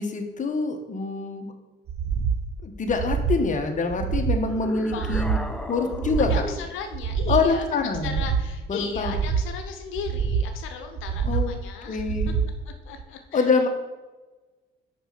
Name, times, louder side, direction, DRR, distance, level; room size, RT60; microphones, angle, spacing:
voice 1, 0.0-1.5 2.6-5.4 5.7-6.5 7.3-8.3 8.7-9.1 11.2-11.5 11.9-12.3 13.3-13.7, left 4 dB, 40° left, 4 dB, 1.3 m, -25 dB
sound 1, 1.9-2.4 2.8-3.4 3.9-4.4 4.9-5.5 5.9-6.5 6.9-7.5 7.9-8.5 8.9-9.5 9.9-10.5 10.9-11.5 11.9-12.5 12.9-13.0, right 6 dB, 55° right, 0.8 m, -26 dB
sound 2, 4.5-6.8, left 1 dB, 5° left, 0.7 m, -36 dB
voice 2, 4.9-7.6 8.0-12.3 12.6-13.5, left 6 dB, 85° left, 5 dB, 0.8 m, -37 dB
5.9 x 5.1 x 6.8 m, 1.2 s
cardioid pair, 90°, 20 cm